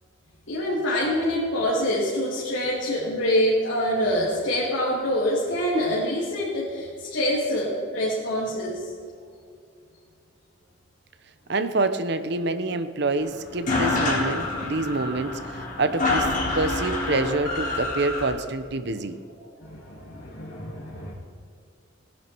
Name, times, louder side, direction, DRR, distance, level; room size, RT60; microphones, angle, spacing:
voice 1, 0.5-8.9 19.6-21.1, equal, 75° left, -7 dB, 3.0 m, -25 dB
voice 2, 11.5-19.2, right 2 dB, 60° right, 11 dB, 0.9 m, -27 dB
sound 1, 13.2-13.3 13.5-18.3, left 2 dB, 45° left, 3.8 m, -27 dB
18.5 x 11.0 x 4.6 m, 2.3 s
head